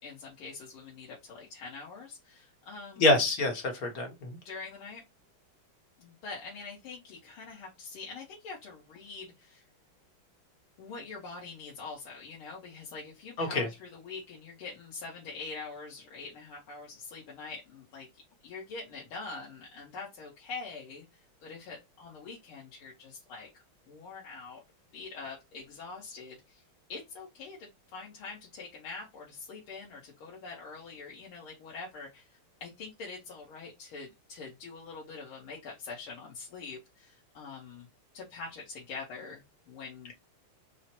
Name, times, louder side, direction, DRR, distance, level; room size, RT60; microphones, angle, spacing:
voice 1, 0.0-3.1 4.5-5.0 6.0-9.6 10.8-18.1 18.4-24.6 24.9-26.6 26.9-37.9 38.1-40.1, left 4 dB, 75° left, -3 dB, 2.0 m, -44 dB
voice 2, 3.0-4.4 13.4-13.7, left 2 dB, 50° left, 3 dB, 1.3 m, -26 dB
4.5 x 2.1 x 4.3 m, 0.22 s
omnidirectional pair, 2.3 m